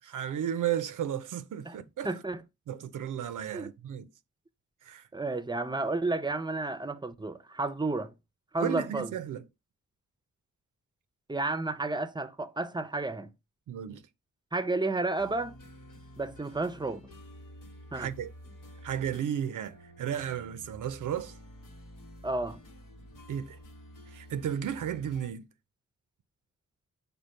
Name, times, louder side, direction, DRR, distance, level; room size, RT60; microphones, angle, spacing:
voice 1, 0.0-2.1 2.7-4.1 4.8-5.1 8.6-9.4 13.7-14.0 17.9-18.3 18.8-21.4 23.3-23.6 24.1-25.5, right 9 dB, 75° right, 0.6 m, -34 dB
voice 2, 2.0-2.4 3.5-3.7 5.1-8.1 8.5-9.1 11.3-13.3 14.5-15.6 16.2-17.0 17.9-18.1 22.2-22.6, right 2 dB, 15° right, 0.6 m, -31 dB
sound 1, 15.2-25.3, equal, 85° left, 1.2 m, -50 dB
5.1 x 2.2 x 4.3 m
cardioid pair, 50°, 31 cm